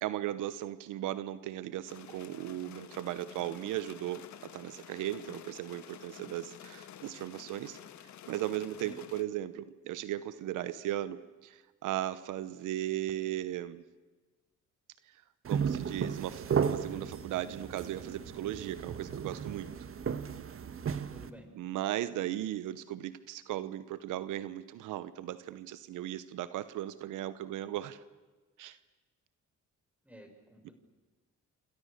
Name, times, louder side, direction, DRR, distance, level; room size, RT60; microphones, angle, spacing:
voice 1, 0.0-7.8 8.3-13.8 15.5-19.7 21.5-28.0 28.6-28.8, right 13 dB, 85° right, 14 dB, 1.0 m, -37 dB
sound 1, 1.9-9.2, left 10 dB, 70° left, 1.6 m, -51 dB
sound 2, 15.4-21.3, right 7 dB, 45° right, 1.5 m, -34 dB
voice 2, 21.1-21.5 30.0-30.7, equal, 5° right, 4 dB, 6.3 m, -52 dB
28.0 x 26.0 x 6.7 m, 1.3 s
cardioid pair, 90°, 30 cm